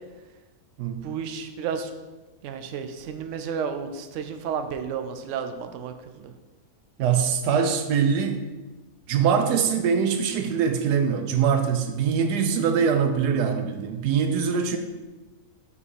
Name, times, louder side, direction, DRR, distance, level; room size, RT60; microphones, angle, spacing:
voice 1, 1.0-1.9 2.4-6.3, right 6 dB, 65° right, 8 dB, 0.8 m, -32 dB
voice 2, 7.0-8.4 9.1-14.8, right 7 dB, 90° right, 7 dB, 1.2 m, -23 dB
7.1 x 3.4 x 4.2 m, 1.2 s
omnidirectional pair, 1.7 m